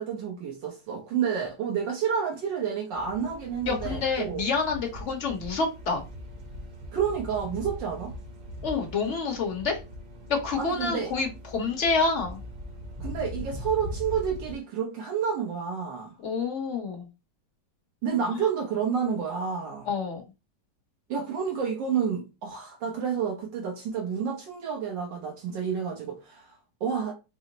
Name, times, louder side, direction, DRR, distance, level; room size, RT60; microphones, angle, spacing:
voice 1, 0.0-4.4 6.9-8.1 10.6-11.1 13.0-16.1 18.0-19.9 21.1-27.1, right 7 dB, 80° right, 1.6 m, -30 dB
sound 1, 2.9-14.6, left 1 dB, 65° right, 1.7 m, -40 dB
voice 2, 3.7-6.0 8.6-9.8 10.3-12.4 16.2-17.1 19.9-20.2, left 4 dB, 45° left, 1.2 m, -28 dB
4.6 x 2.1 x 3.9 m
omnidirectional pair, 1.9 m